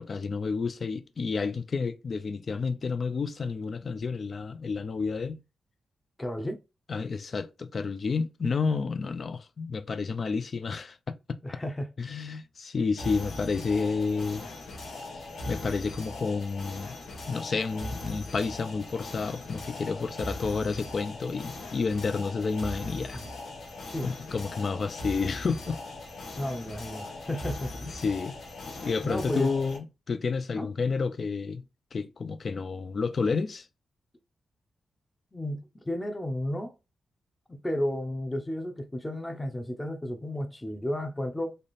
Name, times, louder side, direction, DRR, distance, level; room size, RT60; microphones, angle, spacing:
voice 1, 0.0-5.4 6.9-11.1 12.0-14.5 15.5-17.0 17.3-23.2 24.0-25.8 28.0-28.4 28.8-31.6 31.9-33.7, left 4 dB, 50° left, 0.4 m, -30 dB
voice 2, 6.2-6.6 11.4-11.9 23.1-23.3 23.8-24.1 26.4-28.0 29.0-29.5 30.6-30.7 35.3-36.7 37.5-41.6, left 1 dB, 15° left, 0.7 m, -33 dB
sound 1, 13.0-29.8, left 2 dB, 85° left, 1.1 m, -40 dB
3.4 x 2.5 x 4.1 m
cardioid pair, 80°, 0 cm